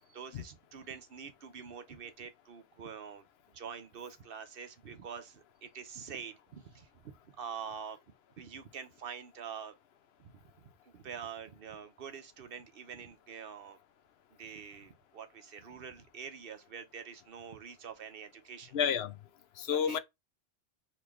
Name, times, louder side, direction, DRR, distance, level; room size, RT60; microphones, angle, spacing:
voice 1, 0.1-3.2 3.5-8.0 8.4-9.7 10.2-10.3 10.9-13.8 14.4-18.7 19.7-20.0, right 7 dB, 60° right, 0.9 m, -46 dB
voice 2, 18.7-19.2 19.6-20.0, left 8 dB, 70° left, 0.8 m, -30 dB
4.3 x 3.2 x 3.0 m
omnidirectional pair, 1.1 m